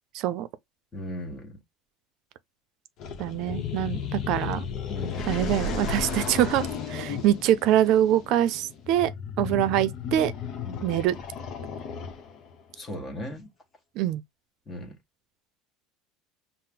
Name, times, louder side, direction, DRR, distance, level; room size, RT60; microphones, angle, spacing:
voice 1, 0.1-0.5 3.2-4.7 5.3-9.1 9.4-10.3 10.8-11.2 14.0-14.2, right 12 dB, 60° right, 0.5 m, -24 dB
voice 2, 0.9-1.6 4.9-5.3 7.1-7.2 9.5-9.6 10.6-10.9 12.7-13.5 14.7-15.0, left 1 dB, 30° left, 1.5 m, -37 dB
sound 1, 3.0-12.5, left 6 dB, 55° left, 0.8 m, -34 dB
5.6 x 2.1 x 3.8 m
supercardioid pair, 95°, 0 cm